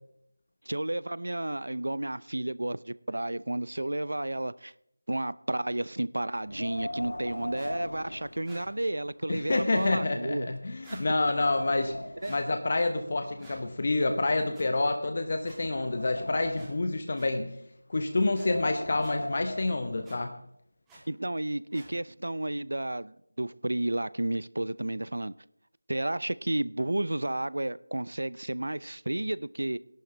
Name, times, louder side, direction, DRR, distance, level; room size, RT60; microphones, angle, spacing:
voice 1, 0.7-4.7 5.1-10.5 12.2-12.3 21.1-25.3 25.9-29.8, right 1 dB, 70° right, 0.5 m, -32 dB
Wind, 6.4-9.0 9.4-9.5 10.2-10.3 10.7-12.4 13.2-14.7 15.3-16.9 18.2-20.3, left 1 dB, 70° left, 1.3 m, -39 dB
sound 1, 7.5-7.7 8.4-8.6 9.7-10.0 10.8-11.1 12.2-12.4 13.4-13.6 14.5-14.6 15.4-15.6 16.5-16.7 17.1-17.3 18.3-18.5 19.0-19.1 20.0-20.2 20.9-21.0 21.7-21.9, right 1 dB, 5° right, 2.4 m, -50 dB
voice 2, 9.3-12.0 12.3-17.6 17.9-20.3, left 2 dB, 45° left, 1.0 m, -28 dB
18.0 x 11.5 x 3.3 m
figure-of-eight pair, 165°, 0 cm